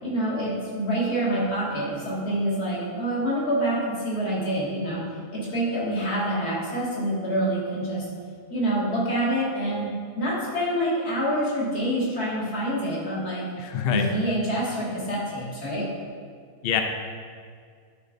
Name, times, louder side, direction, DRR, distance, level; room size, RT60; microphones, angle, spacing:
voice 1, 0.0-5.1 5.3-8.1 8.5-13.5 13.9-15.9, right 1 dB, 75° left, -6 dB, 2.6 m, -26 dB
voice 2, 13.6-14.1 16.6-16.8, left 9 dB, 55° left, 5 dB, 0.6 m, -24 dB
11.0 x 6.8 x 2.6 m, 2.1 s
omnidirectional pair, 1.6 m